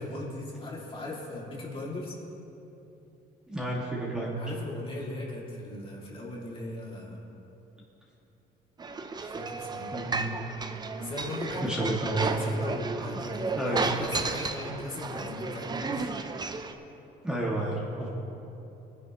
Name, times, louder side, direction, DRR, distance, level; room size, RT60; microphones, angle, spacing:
voice 1, 0.0-2.2 4.4-7.3 9.2-10.0 11.0-16.1, left 2 dB, 30° left, -4 dB, 2.6 m, -38 dB
voice 2, 3.5-4.4 9.9-10.7 11.6-12.3 13.6-13.9 17.2-18.1, right 1 dB, 5° right, -5 dB, 2.1 m, -31 dB
sound 1, 8.8-16.7, right 4 dB, 25° right, 0.7 m, -33 dB
20.0 x 10.0 x 3.1 m, 3.0 s
cardioid pair, 110°, 17 cm